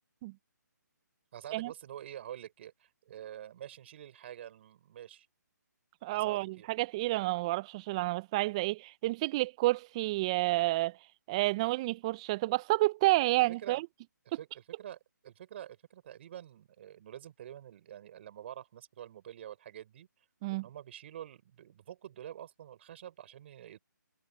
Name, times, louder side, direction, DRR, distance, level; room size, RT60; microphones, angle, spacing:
voice 1, 1.3-5.3 6.1-6.7 13.6-13.8 14.4-20.1 20.5-23.8, right 11 dB, 40° right, 4.9 m, -47 dB
voice 2, 6.0-11.0 11.3-13.9 20.4-20.7, right 19 dB, 20° right, 0.4 m, -30 dB
figure-of-eight pair, 150°, 10 cm